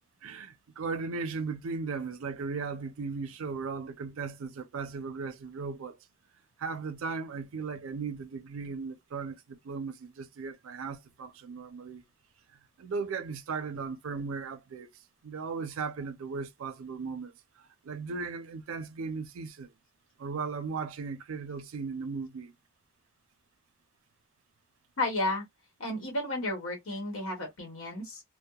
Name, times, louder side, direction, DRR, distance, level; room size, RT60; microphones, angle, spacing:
voice 1, 0.2-6.0 6.6-12.0 12.8-14.9 15.2-17.3 17.6-19.7 20.2-22.5, right 4 dB, 75° right, 0.4 m, -37 dB
voice 2, 25.0-25.4 25.8-28.2, left 2 dB, 75° left, 1.0 m, -32 dB
2.2 x 2.0 x 2.7 m
head